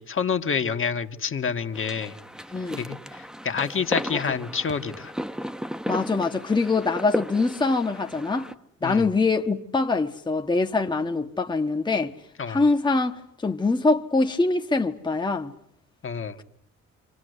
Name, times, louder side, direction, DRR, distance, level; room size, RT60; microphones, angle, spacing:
voice 1, 0.0-2.2 2.8-5.1 8.8-9.1 12.4-12.6 16.0-16.4, left 6 dB, 45° left, 1.7 m, -28 dB
sound 1, 1.7-8.5, equal, ahead, 1.2 m, -35 dB
voice 2, 2.5-2.8 4.1-4.2 5.9-8.5 8.8-12.1 12.5-15.5, left 3 dB, 15° left, 1.3 m, -24 dB
27.5 x 26.0 x 8.1 m
cardioid pair, 90°, 30 cm